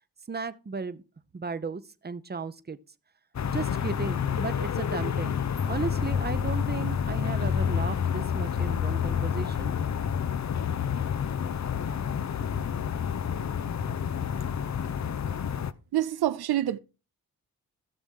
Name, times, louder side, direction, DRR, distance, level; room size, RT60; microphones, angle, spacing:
voice 1, 0.3-1.0 1.3-2.8 3.5-9.7, right 4 dB, 25° right, 0.9 m, -35 dB
sound 1, 3.3-15.7, left 8 dB, 45° left, 0.7 m, -29 dB
voice 2, 15.9-16.8, right 13 dB, 85° right, 0.6 m, -26 dB
15.5 x 6.2 x 3.7 m
cardioid pair, 55°, 38 cm